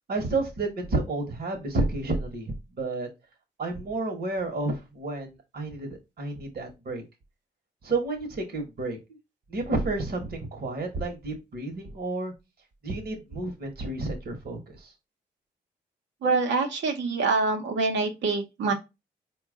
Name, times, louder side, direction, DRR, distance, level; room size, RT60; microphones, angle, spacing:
voice 1, 0.1-3.1 3.6-7.0 7.8-9.0 9.5-12.3 12.8-14.9, right 2 dB, 55° right, 3 dB, 1.1 m, -31 dB
voice 2, 16.2-18.7, right 3 dB, 75° right, 3 dB, 0.9 m, -25 dB
4.5 x 2.3 x 3.6 m, 0.24 s
supercardioid pair, 40°, 19 cm